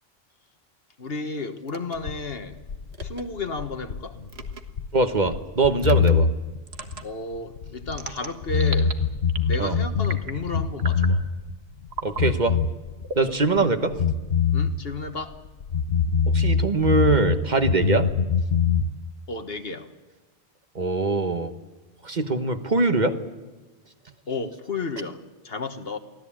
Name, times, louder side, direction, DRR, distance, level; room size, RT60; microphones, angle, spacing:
voice 1, 1.0-2.6 3.0-4.2 7.0-8.9 9.4-11.2 14.5-15.4 19.3-19.9 24.3-26.0, left 3 dB, 70° left, 8 dB, 1.7 m, -32 dB
sound 1, 1.7-2.0 2.9-3.2 4.3-4.6 5.8-6.1 6.7-7.0 7.9-8.9 9.3-9.7 10.0-10.4 10.8-11.2 11.9-12.2 13.0-13.9, right 4 dB, 75° right, 1.8 m, -36 dB
sound 2, 2.0-8.2 8.4-11.5 11.8-13.6 13.9-17.4 17.6-18.9, left 6 dB, 90° left, 1.3 m, -24 dB
voice 2, 4.9-6.3 9.6-9.7 12.0-12.6 13.2-14.0 16.3-18.1 20.7-21.5 22.0-23.2, right 3 dB, 45° right, 8 dB, 1.4 m, -22 dB
24.5 x 16.5 x 8.8 m, 1.2 s
omnidirectional pair, 1.1 m